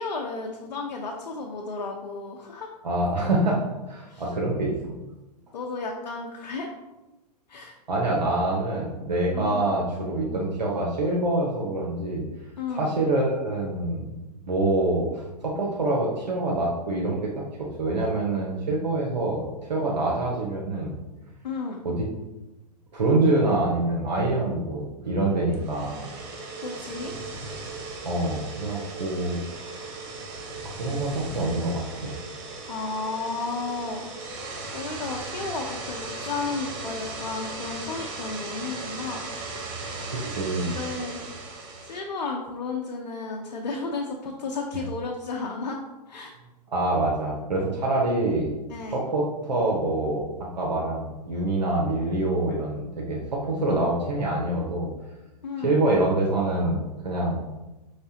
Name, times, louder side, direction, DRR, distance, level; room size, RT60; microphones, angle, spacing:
voice 1, 0.0-2.7 4.1-4.2 5.5-6.7 7.5-7.7 9.3-9.7 12.6-12.9 21.4-21.9 26.6-27.1 32.6-34.0 34.7-39.3 40.7-41.2 41.8-45.8 46.1-46.3 48.7-49.0 55.4-55.7, left 4 dB, 80° left, 1 dB, 0.7 m, -33 dB
voice 2, 2.8-4.9 7.9-12.2 12.7-14.0 14.4-20.9 21.8-22.1 22.9-26.1 28.0-30.0 30.6-32.1 40.1-40.8 46.7-48.5 48.9-54.9 55.6-57.4, right 2 dB, 85° right, -3 dB, 1.0 m, -26 dB
sound 1, 25.5-42.0, right 3 dB, 45° right, 0.9 m, -37 dB
5.6 x 3.3 x 2.8 m, 1.0 s
hypercardioid pair, 120°, 21 cm